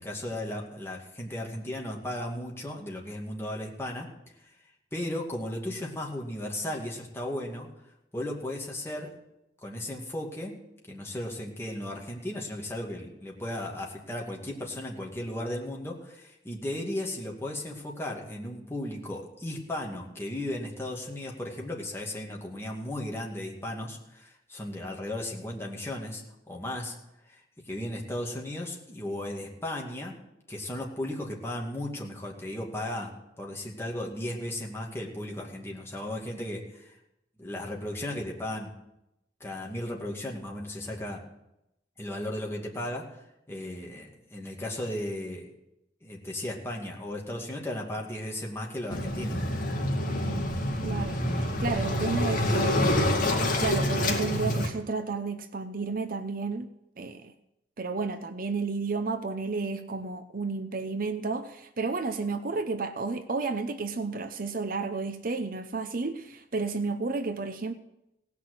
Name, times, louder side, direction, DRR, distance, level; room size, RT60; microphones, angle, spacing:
voice 1, 0.0-4.1 4.9-7.7 8.1-9.1 9.6-10.6 10.9-27.0 27.3-27.4 27.7-30.2 30.5-37.0 37.4-38.7 39.4-41.2 42.0-45.5 46.0-49.5, left 1 dB, 15° left, 2.3 m, -35 dB
Waves surf, 48.9-54.7, left 1 dB, 50° left, 2.3 m, -27 dB
voice 2, 50.2-53.0 53.6-56.7 57.0-57.3 57.8-67.7, right 4 dB, 50° right, 0.7 m, -32 dB
17.5 x 6.0 x 8.0 m
head